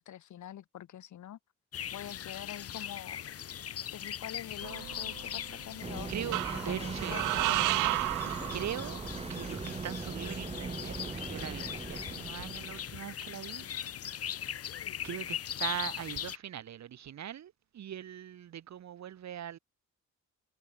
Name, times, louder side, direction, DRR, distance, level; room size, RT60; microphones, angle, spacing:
voice 1, 0.0-1.4 1.9-3.2 3.9-6.1 6.6-8.5, left 11 dB, 70° left, 7.4 m, -45 dB
sound 1, 1.7-16.4, left 10 dB, 50° left, 1.1 m, -40 dB
sound 2, 4.6-5.4 6.3-9.2, right 20 dB, 85° right, 0.5 m, -32 dB
sound 3, 5.8-13.1, right 4 dB, 20° right, 0.9 m, -40 dB
voice 2, 6.1-7.2 8.2-13.7 15.0-19.6, right 10 dB, 65° right, 3.3 m, -41 dB
cardioid pair, 90°, 30 cm